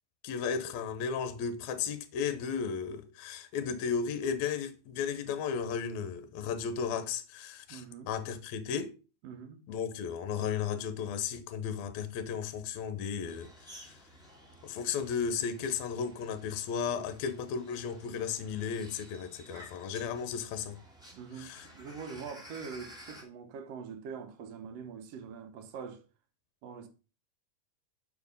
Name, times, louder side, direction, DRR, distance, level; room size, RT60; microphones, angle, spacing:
voice 1, 0.2-8.9 9.7-14.0 14.6-20.8 21.4-21.7, left 6 dB, 70° left, 1.8 m, -34 dB
voice 2, 7.7-8.1 9.2-9.6 21.1-26.0 26.6-26.9, right 6 dB, 70° right, 1.6 m, -44 dB
sound 1, 13.3-23.2, equal, 5° right, 0.6 m, -53 dB
6.8 x 4.9 x 5.3 m
omnidirectional pair, 3.9 m